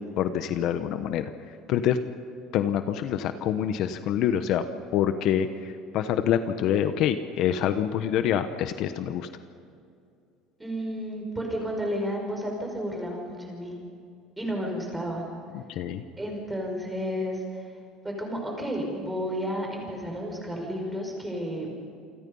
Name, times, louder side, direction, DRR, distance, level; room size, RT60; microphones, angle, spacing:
voice 1, 0.2-1.3 1.7-2.0 2.5-4.6 4.9-9.3 15.5-16.0, left 10 dB, 55° left, 9 dB, 1.0 m, -26 dB
voice 2, 10.6-13.8 14.4-15.2 16.2-17.6 18.0-21.9, equal, 10° right, 1 dB, 6.0 m, -32 dB
28.0 x 24.5 x 5.5 m, 2.4 s
cardioid pair, 140°, 0 cm